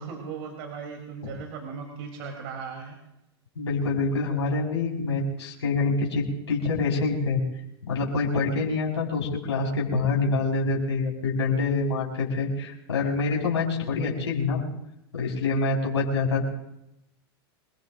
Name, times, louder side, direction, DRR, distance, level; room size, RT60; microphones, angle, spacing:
voice 1, 0.0-2.9, right 5 dB, 60° right, 1 dB, 3.3 m, -37 dB
voice 2, 3.5-7.4 7.8-14.6 15.1-16.5, left 3 dB, 90° left, -4 dB, 4.8 m, -26 dB
27.0 x 19.5 x 2.6 m, 0.85 s
hypercardioid pair, 100°, 14 cm